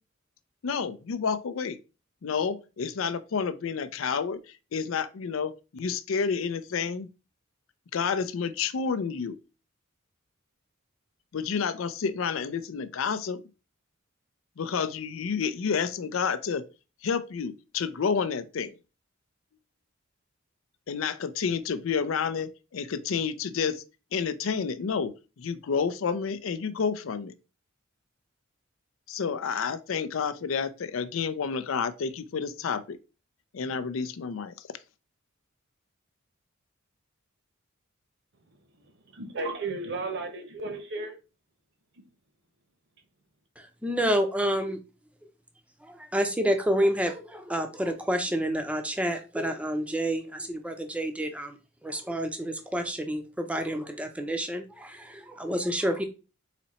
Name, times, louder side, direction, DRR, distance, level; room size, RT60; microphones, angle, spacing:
voice 1, 0.6-1.8 2.2-4.4 4.7-7.1 7.9-9.4 11.3-13.4 14.6-16.6 17.0-18.7 20.9-23.8 24.1-27.3 29.1-33.0 33.5-34.5, left 6 dB, 70° left, 0.4 m, -30 dB
voice 2, 38.8-41.2, right 3 dB, 60° right, 0.9 m, -34 dB
voice 3, 43.8-44.8 45.9-51.6 51.8-56.0, equal, 5° right, 0.6 m, -29 dB
4.1 x 2.8 x 4.2 m
head